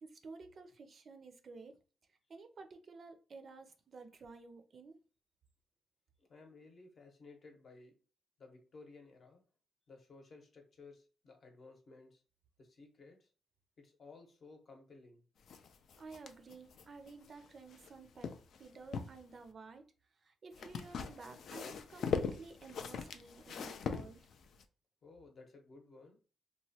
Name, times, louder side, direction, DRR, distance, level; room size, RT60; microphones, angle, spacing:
voice 1, 0.0-1.8 2.1-5.0 16.0-18.3 18.6-19.9 20.2-24.3, right 4 dB, 45° right, 0.4 m, -53 dB
voice 2, 6.2-8.0 8.4-9.4 9.9-12.2 12.6-13.3 13.8-15.2 25.0-26.2, left 3 dB, 45° left, 0.8 m, -57 dB
sound 1, 15.5-17.9 18.2-19.2 20.5-24.6, left 6 dB, 65° left, 0.3 m, -40 dB
2.9 x 2.2 x 2.7 m
cardioid pair, 120°, 0 cm